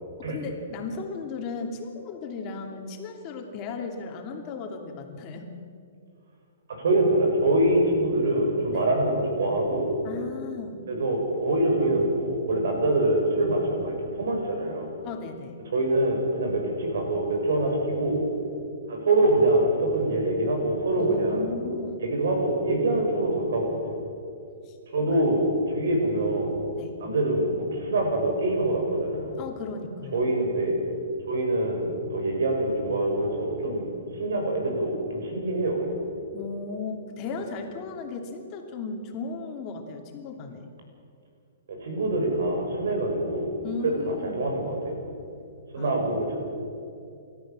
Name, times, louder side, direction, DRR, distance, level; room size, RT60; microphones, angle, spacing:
voice 1, 0.2-5.5 8.7-8.9 10.0-10.8 15.0-15.6 21.0-22.0 24.6-24.8 25.1-25.2 26.8-27.0 29.4-30.2 36.3-40.7 43.6-44.5 45.8-46.0, left 4 dB, 30° left, 3 dB, 2.6 m, -36 dB
voice 2, 6.7-10.0 10.9-14.9 15.7-18.2 18.9-21.5 22.0-24.0 24.9-26.5 27.0-29.3 30.1-30.8 31.3-36.0 41.7-43.5 43.8-45.0 45.7-46.4, right 1 dB, 75° right, 2 dB, 6.5 m, -25 dB
29.0 x 13.5 x 7.6 m, 2.5 s
hypercardioid pair, 155°, 0 cm